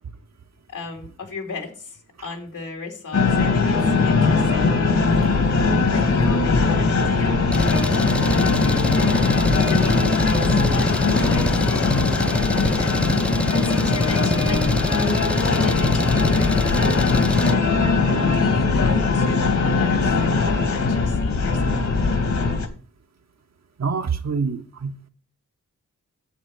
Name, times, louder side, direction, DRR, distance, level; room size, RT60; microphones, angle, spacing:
voice 1, 0.7-4.7 5.8-9.0 9.6-11.5 12.6-12.9 13.6-14.8 15.4-21.7, left 4 dB, 85° left, 3.1 m, -35 dB
sound 1, 3.1-22.7, left 4 dB, 60° left, 2.1 m, -20 dB
Engine, 7.5-17.5, left 1 dB, 5° left, 0.4 m, -26 dB
voice 2, 23.8-25.1, right 5 dB, 60° right, 1.2 m, -26 dB
9.3 x 7.5 x 4.8 m
wide cardioid pair, 90°, 31 cm